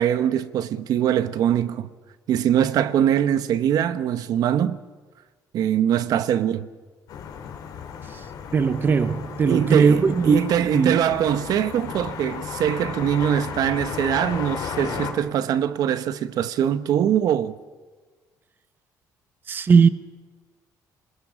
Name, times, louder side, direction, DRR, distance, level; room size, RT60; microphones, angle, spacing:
voice 1, 0.0-1.9 2.3-4.8 5.5-6.7 9.5-17.5, right 10 dB, 65° right, 1.0 m, -22 dB
sound 1, 7.1-15.1, left 7 dB, 65° left, 3.7 m, -34 dB
voice 2, 8.5-11.0 14.9-15.0 19.5-19.9, right 5 dB, 30° right, 0.7 m, -19 dB
26.0 x 21.0 x 7.5 m
cardioid pair, 155°, 7 cm